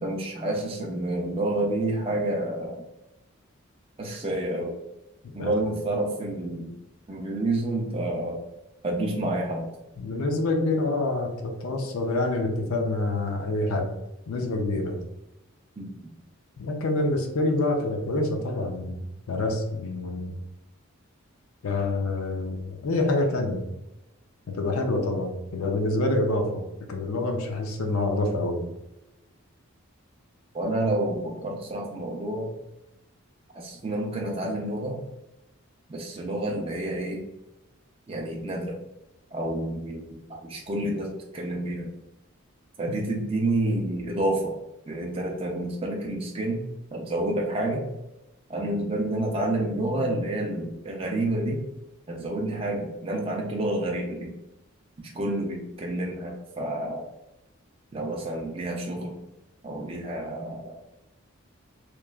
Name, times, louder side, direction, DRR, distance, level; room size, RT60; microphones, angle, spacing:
voice 1, 0.0-2.8 4.0-4.8 5.3-6.8 7.1-8.4 8.8-9.7 15.8-16.1 30.5-32.5 33.5-35.0 35.9-37.2 38.1-38.8 39.3-41.9 42.8-44.6 44.9-46.6 46.9-47.9 48.5-51.6 52.1-54.3 55.0-57.0 57.9-59.1 59.6-60.7, right 1 dB, 25° right, -1 dB, 0.4 m, -29 dB
voice 2, 10.0-13.9 14.3-15.0 16.6-19.0 19.3-20.4 21.6-23.7 24.5-28.6, left 2 dB, 75° left, 3 dB, 0.4 m, -27 dB
3.0 x 2.3 x 2.2 m, 0.93 s
head